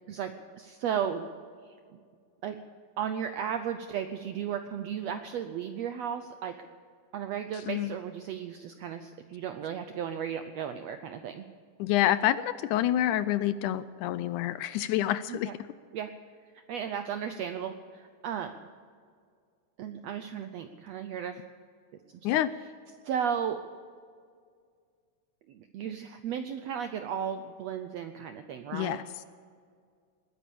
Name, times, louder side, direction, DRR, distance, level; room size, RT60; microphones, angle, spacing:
voice 1, 0.1-1.3 1.6-2.0 2.4-2.6 3.0-6.6 7.1-11.4 15.3-15.6 15.9-16.1 16.5-18.5 19.8-21.4 23.0-23.6 25.5-29.0, right 8 dB, 80° right, 8 dB, 1.5 m, -35 dB
voice 2, 11.8-15.5 22.2-22.5 28.7-29.0, left 13 dB, 80° left, 14 dB, 1.9 m, -27 dB
20.0 x 10.0 x 7.0 m, 2.1 s
omnidirectional pair, 3.8 m